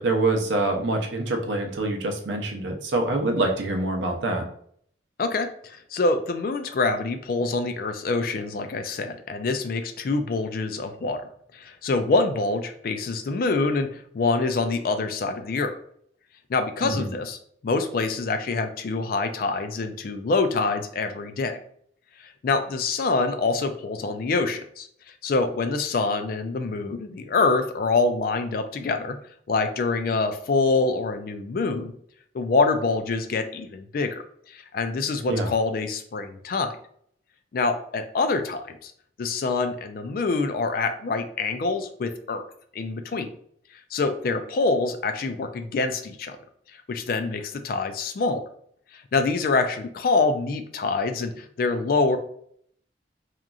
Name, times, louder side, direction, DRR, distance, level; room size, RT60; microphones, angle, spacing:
voice 1, 0.0-4.4 16.8-17.1 35.3-35.5, right 2 dB, 80° right, 3 dB, 0.6 m, -25 dB
voice 2, 5.2-11.2 11.5-15.7 16.5-17.4 17.6-21.6 22.2-24.9 25.2-29.2 29.5-31.9 32.3-34.2 34.5-36.7 37.5-38.9 39.2-42.4 42.7-43.3 43.9-46.4 46.9-48.4 48.9-52.2, left 3 dB, 50° left, 8 dB, 0.3 m, -25 dB
2.9 x 2.4 x 2.3 m, 0.64 s
head